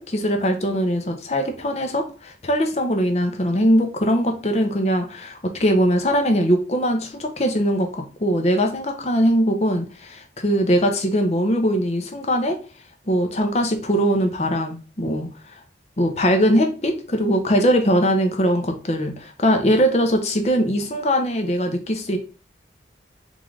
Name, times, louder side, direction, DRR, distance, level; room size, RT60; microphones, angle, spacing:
voice 1, 0.0-12.6 13.1-15.3 16.0-22.2, equal, 35° left, 4 dB, 0.7 m, -21 dB
3.7 x 3.2 x 3.7 m, 0.35 s
head